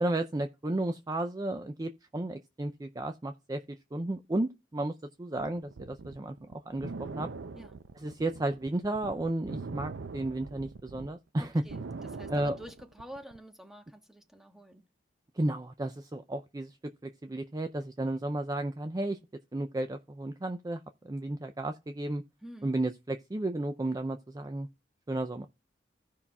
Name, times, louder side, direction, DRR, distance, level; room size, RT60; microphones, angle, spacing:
voice 1, 0.0-3.6 3.9-4.9 5.2-7.3 8.0-11.6 12.3-12.6 15.3-16.8 17.0-19.2 19.5-22.2 22.6-24.7 25.1-25.5, right 1 dB, 20° right, 0.4 m, -33 dB
sound 1, 5.4-11.1 11.4-13.4, right 4 dB, 85° right, 0.6 m, -42 dB
voice 2, 11.4-14.8 22.4-22.7, equal, ahead, 1.3 m, -48 dB
16.0 x 5.6 x 2.3 m
head